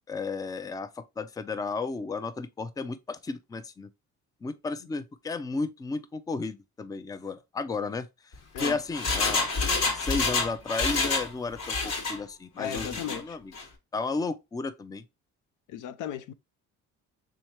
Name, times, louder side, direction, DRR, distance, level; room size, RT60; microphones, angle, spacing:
voice 1, 0.1-0.9 1.2-3.9 4.4-8.1 8.6-9.5 9.9-13.5 13.9-15.0, left 3 dB, 15° left, 0.3 m, -33 dB
Engine, 8.3-11.3 11.6-12.2 12.6-13.2 13.5-13.6, left 4 dB, 60° left, 1.2 m, -28 dB
voice 2, 12.6-13.4 15.7-16.3, left 10 dB, 85° left, 0.5 m, -36 dB
3.6 x 3.1 x 2.8 m
cardioid pair, 90°, 30 cm